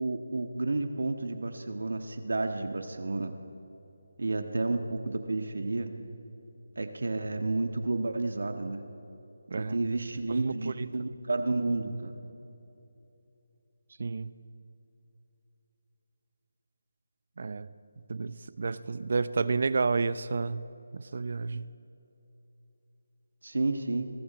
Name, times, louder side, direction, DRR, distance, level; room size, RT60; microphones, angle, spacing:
voice 1, 0.0-3.3 4.2-5.9 6.7-8.8 9.6-12.1 23.4-24.1, right 2 dB, 85° right, 6 dB, 1.6 m, -31 dB
voice 2, 9.5-9.8 10.3-10.9 14.0-14.4 17.4-17.7 18.1-21.7, right 4 dB, 45° right, 15 dB, 0.7 m, -31 dB
29.5 x 22.5 x 4.4 m, 3.0 s
figure-of-eight pair, 175°, 0 cm